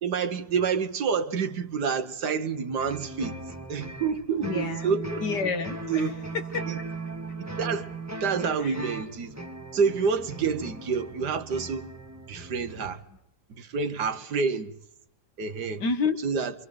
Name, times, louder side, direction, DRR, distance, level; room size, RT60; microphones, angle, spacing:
voice 1, 0.0-3.4 3.7-5.3 5.9-6.1 6.7-6.8 7.4-7.9 8.2-9.4 9.7-11.9 12.3-13.0 13.5-14.7 15.4-15.8 16.2-16.5, right 5 dB, 75° right, 1.8 m, -28 dB
sound 1, 2.8-12.9, right 2 dB, 10° right, 2.0 m, -38 dB
voice 2, 4.4-4.9 5.2-6.0 6.3-6.6 8.6-8.8 15.8-16.2, left 4 dB, 80° left, 2.0 m, -29 dB
27.0 x 24.5 x 3.9 m
omnidirectional pair, 1.8 m